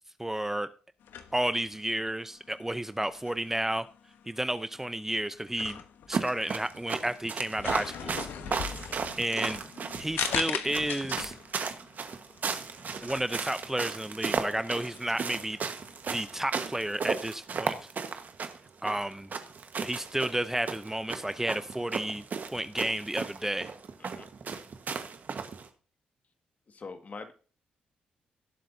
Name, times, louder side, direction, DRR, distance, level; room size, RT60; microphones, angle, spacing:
voice 1, 0.2-0.7 1.3-3.9 4.3-5.8 6.1-8.2 9.2-9.6 10.0-11.3 13.0-15.6 16.1-17.7 18.8-19.3 19.8-22.2 22.5-23.7, right 1 dB, 10° right, 13 dB, 0.6 m, -31 dB
sound 1, 1.0-16.0, left 8 dB, 75° left, 1.1 m, -41 dB
sound 2, 6.1-25.7, right 5 dB, 55° right, 1.4 m, -35 dB
voice 2, 8.5-9.0 24.0-24.6 26.7-27.3, left 4 dB, 45° left, 7 dB, 1.9 m, -46 dB
18.0 x 7.7 x 2.7 m, 0.38 s
supercardioid pair, 55°, 4 cm